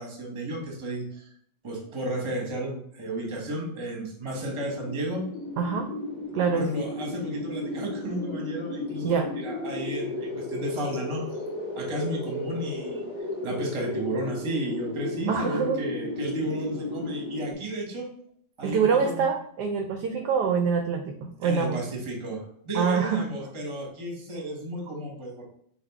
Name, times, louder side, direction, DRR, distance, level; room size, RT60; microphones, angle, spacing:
voice 1, 0.0-1.3 1.6-5.2 6.5-11.2 11.8-13.0 13.4-18.1 18.6-19.2 21.4-25.4, right 1 dB, 25° right, 0 dB, 0.7 m, -33 dB
sound 1, 4.5-17.5, left 2 dB, 30° left, 1.0 m, -34 dB
voice 2, 5.6-5.9 6.3-6.7 9.0-9.3 15.3-15.8 18.6-21.8 22.7-23.2, right 6 dB, 75° right, 5 dB, 0.9 m, -25 dB
5.0 x 2.8 x 3.5 m, 0.64 s
omnidirectional pair, 2.2 m